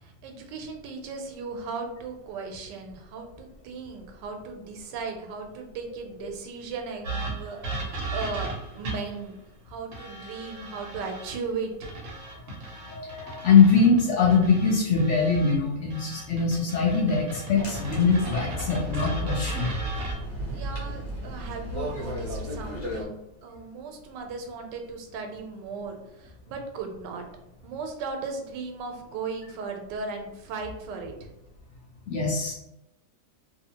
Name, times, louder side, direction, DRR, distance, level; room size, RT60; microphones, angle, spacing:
voice 1, 0.0-9.4 9.7-11.9 20.5-27.2 27.6-31.3, right 4 dB, 85° right, 4 dB, 1.2 m, -37 dB
sound 1, 7.0-9.2 9.9-11.3 11.8-15.5 15.9-20.1, right 2 dB, 55° right, 1.0 m, -36 dB
voice 2, 12.8-19.7 32.1-32.5, left 5 dB, 85° left, -3 dB, 0.6 m, -22 dB
sound 2, 17.5-23.0, equal, 45° left, 1.1 m, -34 dB
2.7 x 2.6 x 2.8 m, 0.88 s
omnidirectional pair, 1.8 m